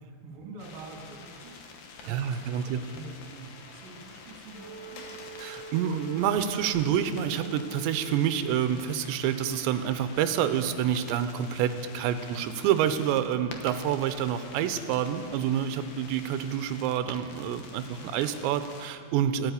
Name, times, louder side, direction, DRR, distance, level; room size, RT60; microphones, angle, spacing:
voice 1, 0.0-5.1 17.9-18.3, right 3 dB, 60° right, -1 dB, 4.1 m, -47 dB
sound 1, 0.6-18.9, left 4 dB, 80° left, 1.6 m, -48 dB
voice 2, 2.1-2.8 5.4-19.5, right 9 dB, 85° right, 10 dB, 2.9 m, -28 dB
Water, 2.7-8.1, left 4 dB, 65° left, 2.7 m, -54 dB
Wind instrument woodwind instrument, 4.5-8.9, right 3 dB, 35° left, 4.7 m, -44 dB
15.5 x 8.9 x 8.2 m, 2.4 s
omnidirectional pair, 5.2 m